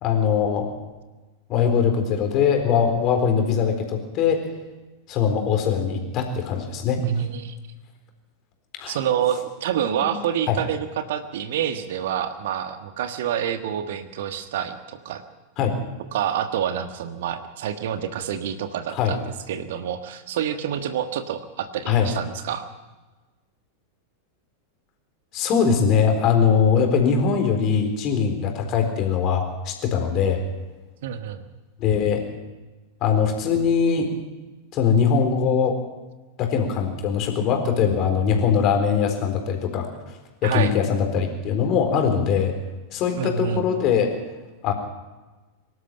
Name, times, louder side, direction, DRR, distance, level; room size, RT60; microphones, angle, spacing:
voice 1, 0.0-0.7 1.5-4.4 5.1-7.0 8.8-9.0 10.0-10.1 10.5-10.6 15.6-15.7 18.9-19.2 21.9-22.1 25.3-30.4 31.8-32.2 33.0-34.1 34.7-35.8 36.4-39.9 40.4-42.6 42.9-44.1 44.6-44.7, left 7 dB, 35° left, 4 dB, 4.1 m, -21 dB
voice 2, 7.0-7.6 8.9-15.2 16.1-19.2 19.5-22.7 31.0-31.4 40.4-40.7 43.2-43.7, right 9 dB, 55° right, 9 dB, 1.4 m, -27 dB
24.0 x 12.5 x 9.0 m, 1.2 s
figure-of-eight pair, 90°, 0 cm